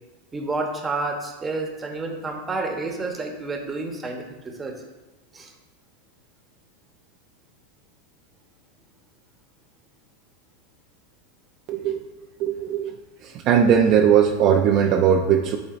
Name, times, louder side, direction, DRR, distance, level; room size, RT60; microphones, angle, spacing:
voice 1, 0.3-4.8 5.3-5.5, right 3 dB, 15° right, 2 dB, 1.1 m, -30 dB
voice 2, 11.7-12.0 12.4-12.9 13.2-15.6, right 8 dB, 45° right, 2 dB, 0.5 m, -19 dB
10.5 x 3.7 x 2.5 m, 1.1 s
supercardioid pair, 120°, 0 cm